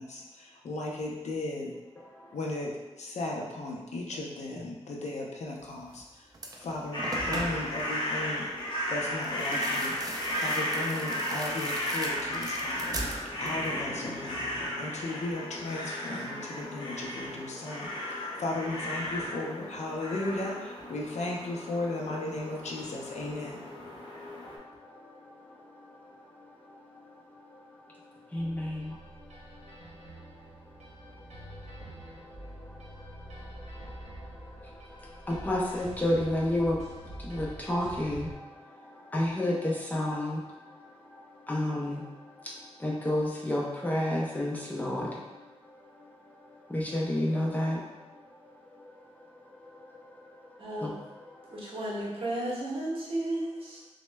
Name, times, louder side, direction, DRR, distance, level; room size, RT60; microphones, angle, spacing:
voice 1, 0.0-1.7 2.3-2.7 3.0-6.3 6.6-8.5 8.9-10.0 10.4-23.6, left 2 dB, 80° left, -1 dB, 0.6 m, -36 dB
voice 2, 2.0-2.4 24.4-51.8, left 1 dB, 15° left, -4 dB, 0.6 m, -34 dB
sound 1, 5.9-6.0 6.3-7.8 9.2-13.8 14.0-14.6, right 2 dB, 30° right, 0.4 m, -40 dB
sound 2, 6.9-24.6, left 1 dB, 45° left, 0.8 m, -35 dB
sound 3, 28.3-38.4, right 1 dB, 80° right, 0.8 m, -46 dB
voice 3, 50.6-50.9 51.5-53.8, right 1 dB, 55° right, -6 dB, 1.0 m, -33 dB
5.9 x 2.1 x 2.2 m, 1.1 s
wide cardioid pair, 170°, 12 cm